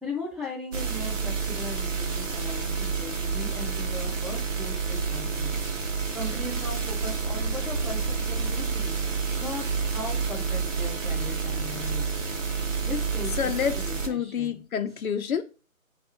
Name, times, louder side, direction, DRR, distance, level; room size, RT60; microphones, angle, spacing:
voice 1, 0.0-5.6 6.1-12.0 12.8-14.6, left 2 dB, ahead, 0.4 m, -38 dB
sound 1, 0.7-14.1, right 5 dB, 65° right, 0.8 m, -29 dB
voice 2, 13.4-15.4, left 7 dB, 80° left, 0.6 m, -28 dB
3.4 x 2.3 x 4.0 m
figure-of-eight pair, 175°, 42 cm